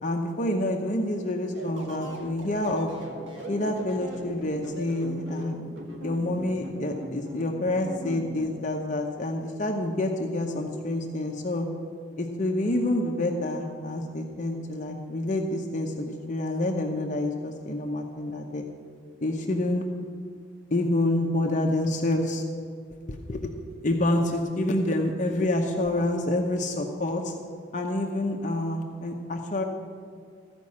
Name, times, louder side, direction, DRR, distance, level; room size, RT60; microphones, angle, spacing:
voice 1, 0.0-2.9 3.5-5.5 6.0-11.7 12.2-18.6 19.2-19.9 20.7-22.4 23.1-23.4 23.8-27.3 27.7-29.6, left 1 dB, 40° left, 2 dB, 0.8 m, -27 dB
sound 1, 1.5-8.5, right 1 dB, 90° right, 1.9 m, -40 dB
14.0 x 5.2 x 8.6 m, 2.2 s
head